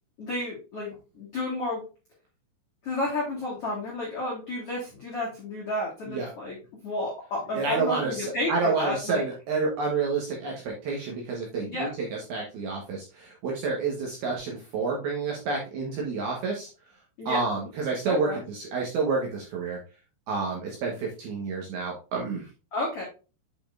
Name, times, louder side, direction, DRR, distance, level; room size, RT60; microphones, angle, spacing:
voice 1, 0.2-1.8 2.8-6.5 6.8-9.2 11.6-11.9 17.2-17.4 18.0-18.4 22.7-23.0, left 2 dB, 75° left, -4 dB, 1.3 m, -31 dB
voice 2, 7.5-16.7 17.3-19.8 20.3-22.5, right 4 dB, 70° right, -1 dB, 2.4 m, -29 dB
8.4 x 5.3 x 2.5 m, 0.32 s
omnidirectional pair, 5.9 m